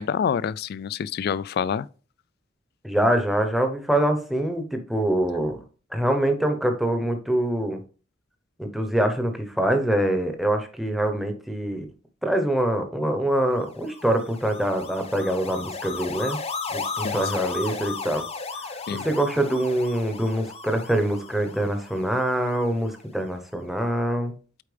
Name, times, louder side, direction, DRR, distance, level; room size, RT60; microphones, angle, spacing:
voice 1, 0.0-1.9 17.0-17.2 18.9-19.1, left 7 dB, 55° left, 0.3 m, -27 dB
voice 2, 2.8-5.6 5.9-7.8 8.6-11.9 12.2-16.4 16.7-18.2 18.9-24.3, right 1 dB, ahead, 0.9 m, -24 dB
sound 1, 13.7-23.0, left 4 dB, 30° left, 0.8 m, -35 dB
8.3 x 4.6 x 3.4 m
head